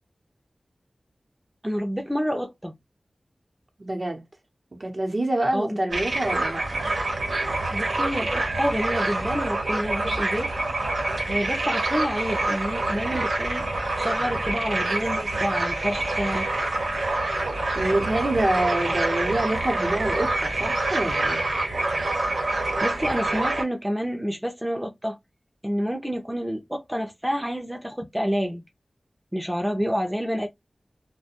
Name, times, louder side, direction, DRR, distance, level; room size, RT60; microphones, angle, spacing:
voice 1, 1.6-2.8 5.5-5.8 7.7-10.5 11.3-16.5 22.8-25.2 25.6-28.6 29.3-30.5, equal, 5° right, 0.5 m, -28 dB
voice 2, 3.8-4.2 4.8-6.6 17.7-21.4, right 1 dB, 40° right, 0.7 m, -26 dB
sound 1, 5.9-23.6, right 2 dB, 90° right, 1.0 m, -26 dB
2.4 x 2.1 x 2.8 m
wide cardioid pair, 75°, 0 cm